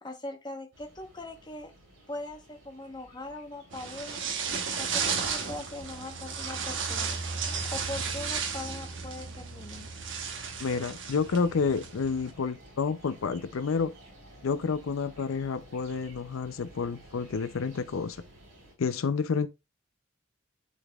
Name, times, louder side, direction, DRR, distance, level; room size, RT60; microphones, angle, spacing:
voice 1, 0.0-1.7 2.1-4.2 4.8-7.2 7.7-9.9, left 2 dB, 20° left, 1.0 m, -41 dB
sound 1, 0.7-18.7, right 1 dB, 80° right, 4.2 m, -55 dB
sound 2, 3.7-12.3, right 5 dB, 65° right, 1.1 m, -34 dB
voice 2, 10.6-13.9 14.4-18.2 18.8-19.5, left 5 dB, 90° left, 0.5 m, -29 dB
10.5 x 4.0 x 2.3 m
head